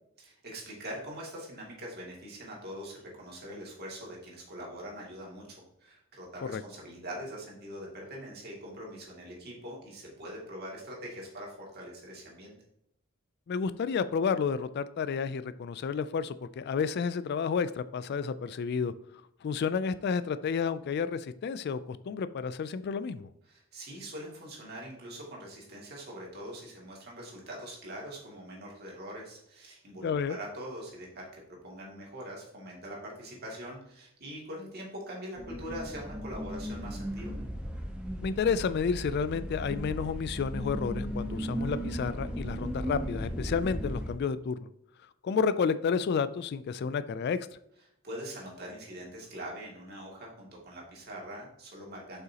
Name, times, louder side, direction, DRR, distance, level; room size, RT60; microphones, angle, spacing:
voice 1, 0.2-12.5 23.5-37.3 48.0-52.2, equal, 50° right, -2 dB, 2.4 m, -43 dB
voice 2, 13.5-18.9 19.4-23.3 30.0-30.4 38.2-44.6 45.2-47.4, left 6 dB, 50° left, 14 dB, 0.3 m, -31 dB
sound 1, 35.4-44.1, equal, 5° right, 0.9 m, -36 dB
7.6 x 5.7 x 2.8 m, 0.76 s
head